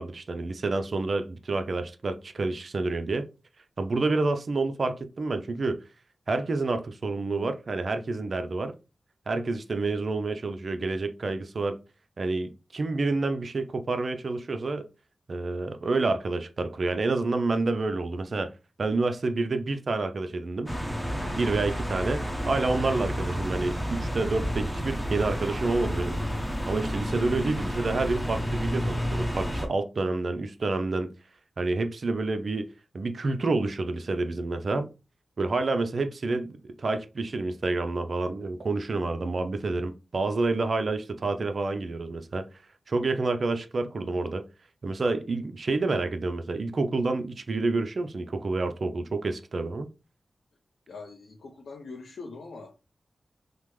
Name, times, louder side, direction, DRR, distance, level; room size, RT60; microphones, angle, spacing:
voice 1, 0.0-3.3 3.8-5.8 6.3-8.7 9.3-11.8 12.2-14.9 15.3-18.5 18.8-20.7 21.3-26.2 26.7-31.1 31.6-32.7 32.9-34.9 35.4-42.5 42.9-44.4 44.8-49.9, right 3 dB, 60° right, 0.4 m, -28 dB
sound 1, 20.7-29.7, equal, ahead, 0.8 m, -30 dB
voice 2, 50.9-52.8, left 3 dB, 80° left, 0.6 m, -42 dB
3.3 x 2.0 x 3.0 m
cardioid pair, 50°, 0 cm